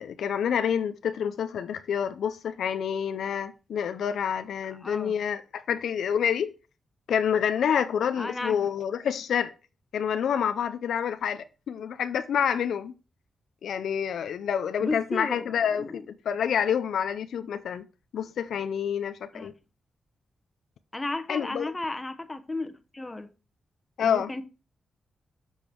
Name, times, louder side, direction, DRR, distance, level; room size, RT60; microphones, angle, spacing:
voice 1, 0.0-6.5 7.1-9.5 9.9-12.9 13.6-17.8 18.1-19.5 21.3-21.7 24.0-24.3, left 8 dB, 85° left, 0.5 m, -28 dB
voice 2, 4.8-5.1 8.2-8.7 14.8-16.0 19.3-19.5 20.9-23.3 24.0-24.4, left 2 dB, 20° left, 1.0 m, -34 dB
7.0 x 5.4 x 4.5 m
cardioid pair, 75°, 0 cm